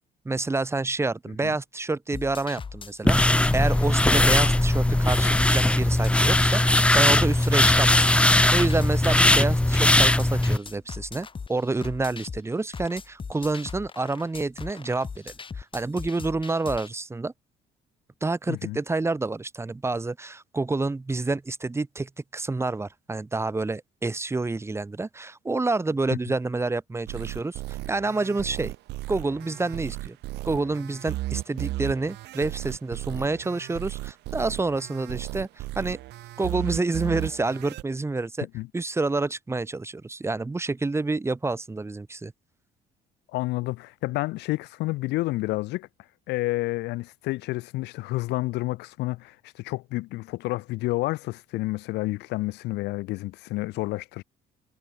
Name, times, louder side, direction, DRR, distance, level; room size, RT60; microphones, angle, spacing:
voice 1, 0.3-17.3 18.2-28.7 29.1-30.2 30.5-36.0 36.4-38.5 38.7-42.3, right 3 dB, 15° right, 1.9 m, -28 dB
sound 1, 2.1-16.9, left 5 dB, 30° left, 5.1 m, -39 dB
sound 2, 3.1-10.6, left 1 dB, 5° left, 1.5 m, -20 dB
voice 2, 18.5-18.8 38.5-38.7 43.3-45.9 46.3-54.2, left 20 dB, 90° left, 6.7 m, -30 dB
sound 3, 27.1-37.8, right 17 dB, 80° right, 7.3 m, -35 dB
cardioid pair, 110°, 17 cm